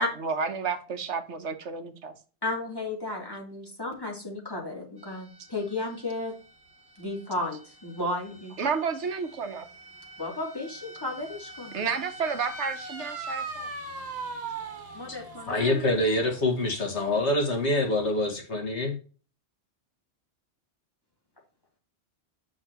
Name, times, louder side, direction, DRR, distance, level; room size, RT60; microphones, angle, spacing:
voice 1, 0.0-2.1 8.6-9.7 11.7-13.7, right 5 dB, 80° right, 8 dB, 1.3 m, -31 dB
voice 2, 2.4-6.3 7.0-8.5 10.2-11.8 14.9-15.9, left 2 dB, 20° left, -2 dB, 2.9 m, -33 dB
sound 1, 5.0-18.3, right 3 dB, 65° right, 1.7 m, -43 dB
voice 3, 15.5-19.0, left 1 dB, 75° left, 2 dB, 2.1 m, -25 dB
8.7 x 6.2 x 2.9 m, 0.36 s
omnidirectional pair, 1.2 m